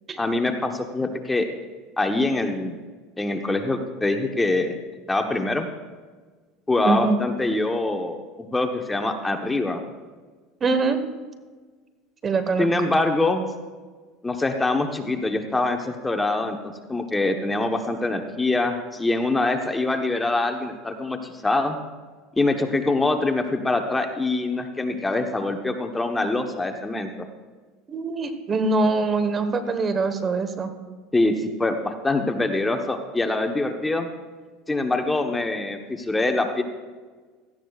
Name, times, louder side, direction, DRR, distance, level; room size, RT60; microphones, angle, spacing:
voice 1, 0.2-1.5 2.0-2.7 3.2-4.8 5.1-5.7 6.7-9.8 12.6-13.5 14.2-21.8 22.4-27.3 31.1-34.1 34.7-36.6, left 2 dB, 10° left, 5 dB, 1.0 m, -24 dB
voice 2, 6.8-7.1 10.6-11.0 12.2-12.7 27.9-30.7, right 3 dB, 30° right, 9 dB, 1.3 m, -23 dB
17.0 x 14.0 x 2.4 m, 1.4 s
supercardioid pair, 105°, 0 cm